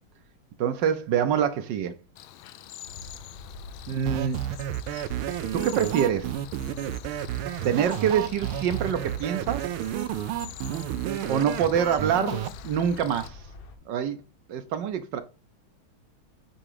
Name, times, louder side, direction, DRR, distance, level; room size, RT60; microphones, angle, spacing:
voice 1, 0.6-1.9 3.9-4.4 5.5-6.4 7.6-9.7 11.3-13.4 13.9-14.2 14.5-15.2, right 8 dB, 70° right, 1.2 m, -25 dB
Cricket, 2.2-13.3, left 12 dB, 75° left, 1.4 m, -46 dB
sound 1, 2.8-13.8, left 3 dB, 55° left, 1.6 m, -44 dB
sound 2, 4.1-12.5, right 12 dB, 85° right, 1.4 m, -31 dB
8.6 x 2.9 x 4.9 m
omnidirectional pair, 2.3 m